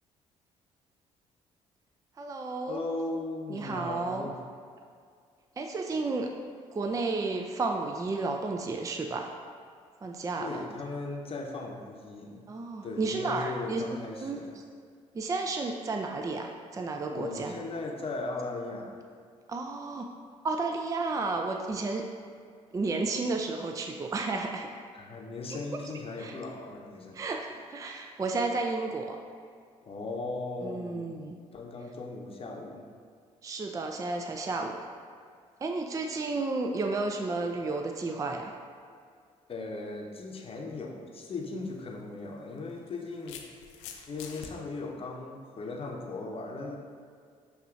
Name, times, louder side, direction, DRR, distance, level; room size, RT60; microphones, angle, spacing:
voice 1, 2.2-2.8 3.5-4.3 5.6-6.3 6.7-9.3 10.0-10.6 12.5-13.8 14.2-14.4 15.1-17.5 19.5-20.1 20.4-22.1 22.7-24.7 26.2-26.4 27.1-29.2 30.6-31.4 33.4-34.8 35.6-38.5, right 3 dB, 20° right, 3 dB, 0.4 m, -32 dB
voice 2, 2.7-4.4 10.4-12.5 12.8-14.5 17.1-19.0 24.9-27.2 29.8-31.1 31.5-32.9 39.5-43.4 44.1-46.8, left 3 dB, 35° left, -1 dB, 0.8 m, -38 dB
sound 1, 41.4-41.5 42.6-44.5, left 7 dB, 80° left, 0.4 m, -45 dB
7.0 x 2.8 x 2.4 m, 2.1 s
hypercardioid pair, 50°, 16 cm